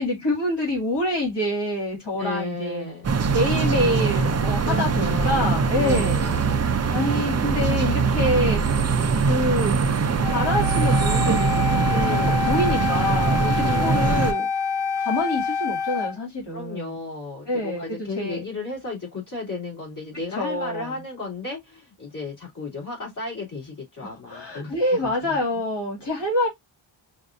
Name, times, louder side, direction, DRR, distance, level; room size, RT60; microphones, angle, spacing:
voice 1, 0.0-2.9 3.3-6.2 6.9-8.7 9.2-12.2 12.5-13.4 13.7-14.5 15.0-16.9 17.5-17.8 18.2-18.4 20.4-20.9 24.0-26.5, left 1 dB, 55° left, 2.4 m, -26 dB
voice 2, 2.1-3.0 4.6-6.5 11.9-12.5 13.4-14.2 16.5-24.7 25.0-25.3, left 3 dB, 40° left, 2.8 m, -34 dB
sound 1, 3.0-14.3, right 5 dB, 35° right, 0.4 m, -22 dB
Wind instrument woodwind instrument, 10.2-16.2, left 6 dB, 80° left, 0.6 m, -27 dB
5.1 x 2.6 x 2.5 m
wide cardioid pair, 145°, 49 cm